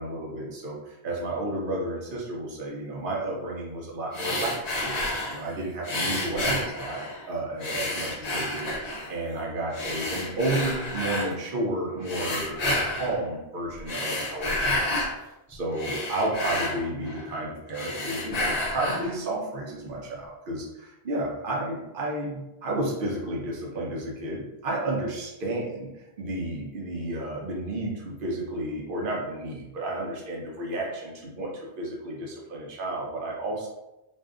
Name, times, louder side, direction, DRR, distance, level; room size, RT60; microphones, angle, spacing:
voice 1, 0.0-7.0 7.3-15.1 15.5-25.9 26.2-33.7, right 1 dB, 60° right, -3 dB, 0.8 m, -32 dB
sound 1, 4.1-5.4 5.8-7.2 7.6-9.2 9.7-11.3 12.0-13.2 13.7-15.1 15.5-17.4 17.7-19.1, left 1 dB, 50° left, 0.6 m, -30 dB
2.6 x 2.3 x 2.3 m, 0.94 s
omnidirectional pair, 1.1 m